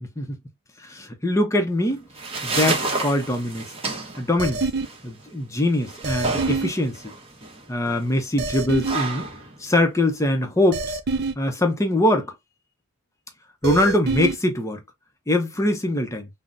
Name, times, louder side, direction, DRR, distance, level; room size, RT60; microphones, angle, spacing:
voice 1, 0.8-2.0 2.4-3.7 4.2-4.7 5.0-7.1 7.7-9.3 9.6-11.0 11.4-12.3 13.6-14.8 15.3-16.3, left 1 dB, 15° left, 0.5 m, -22 dB
sound 1, 1.9-10.9, right 3 dB, 25° right, 0.9 m, -31 dB
sound 2, 4.4-4.9 6.0-6.7 8.4-9.0 10.7-11.3 13.6-14.3, right 4 dB, 50° right, 0.4 m, -26 dB
3.7 x 2.0 x 2.5 m
head